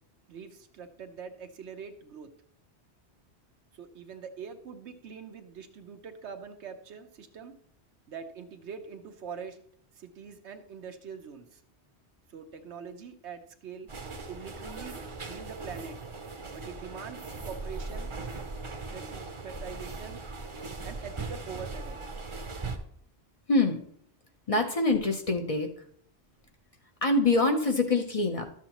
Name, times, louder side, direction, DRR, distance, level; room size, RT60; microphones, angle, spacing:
voice 1, 0.3-2.3 3.7-7.5 8.1-9.6 9.9-11.6 12.3-13.9 14.3-15.0 15.3-16.0 16.5-18.1 18.9-20.2 20.8-22.0, right 6 dB, 85° right, 6 dB, 1.1 m, -43 dB
sound 1, 13.9-22.8, right 3 dB, 30° right, 0.7 m, -39 dB
voice 2, 23.5-23.8 24.5-25.7 27.0-28.5, left 2 dB, 35° left, 4 dB, 0.8 m, -25 dB
12.0 x 7.2 x 3.0 m, 0.63 s
omnidirectional pair, 1.1 m